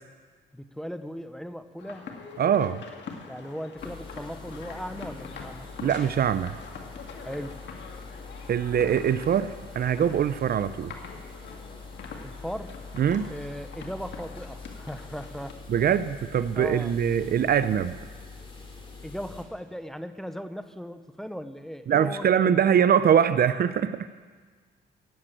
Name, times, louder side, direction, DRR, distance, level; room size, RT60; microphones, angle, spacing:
voice 1, 0.5-2.1 3.3-5.7 7.2-7.6 12.2-12.7 13.3-15.6 16.5-16.9 17.4-17.5 19.0-22.6, equal, ahead, 9 dB, 0.8 m, -38 dB
sound 1, 1.8-15.5, left 5 dB, 65° left, 1.9 m, -44 dB
voice 2, 2.4-2.8 5.8-6.6 8.5-10.9 13.0-13.3 15.7-17.9 21.9-24.1, right 8 dB, 50° right, 14 dB, 0.5 m, -23 dB
sound 2, 3.8-19.4, left 4 dB, 25° left, 2.7 m, -44 dB
16.5 x 7.5 x 9.1 m, 1.5 s
cardioid pair, 90°, 20 cm